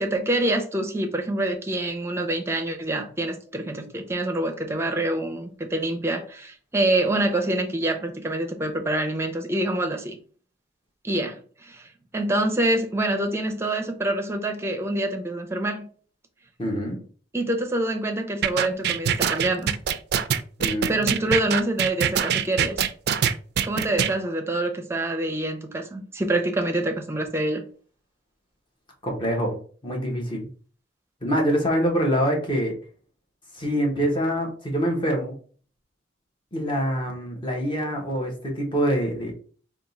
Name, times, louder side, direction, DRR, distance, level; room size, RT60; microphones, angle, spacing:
voice 1, 0.0-10.2 11.0-11.9 12.1-15.9 17.3-19.7 20.9-22.8 23.6-27.6, right 1 dB, 15° right, 4 dB, 0.6 m, -26 dB
voice 2, 16.6-17.0 20.6-20.9 29.0-30.5 31.2-32.7 33.5-35.3 36.5-39.3, equal, 25° left, 1 dB, 1.1 m, -25 dB
sound 1, 18.4-24.1, right 8 dB, 55° right, 0.3 m, -23 dB
3.6 x 2.4 x 4.0 m, 0.43 s
head